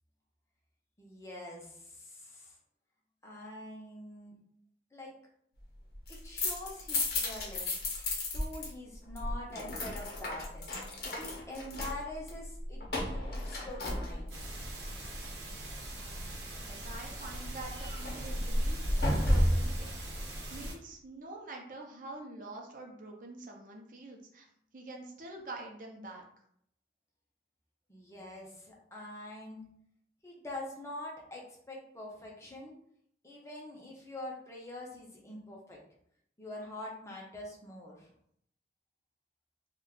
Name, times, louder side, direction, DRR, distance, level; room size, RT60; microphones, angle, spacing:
voice 1, 1.0-2.6 3.2-4.3 4.9-5.1 6.1-8.1 8.3-10.7 11.1-14.3 27.9-29.6 30.2-32.7 33.2-35.8 36.4-38.1, left 1 dB, 15° left, -2 dB, 0.6 m, -45 dB
sound 1, 5.9-8.7 8.9-14.5 17.6-19.8, left 1 dB, 60° left, 0.7 m, -32 dB
sound 2, 14.3-20.7, right 1 dB, 90° right, 0.8 m, -42 dB
voice 2, 16.5-19.9 20.2-24.5 24.7-26.2, right 2 dB, 50° right, 0 dB, 0.5 m, -46 dB
2.4 x 2.2 x 3.6 m, 0.68 s
head